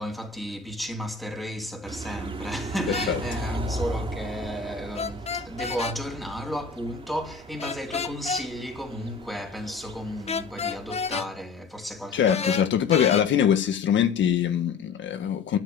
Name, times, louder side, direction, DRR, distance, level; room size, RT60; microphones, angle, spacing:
voice 1, 0.0-12.7, equal, ahead, 3.1 m, -33 dB
sound 1, 1.8-11.2, right 2 dB, 30° right, 3.0 m, -37 dB
sound 2, 2.9-3.1 4.9-6.0 7.6-8.5 10.3-11.3 12.3-13.2, left 5 dB, 30° left, 1.1 m, -30 dB
voice 2, 12.1-15.6, left 9 dB, 70° left, 1.5 m, -23 dB
13.0 x 5.9 x 9.5 m
cardioid pair, 90°, 20 cm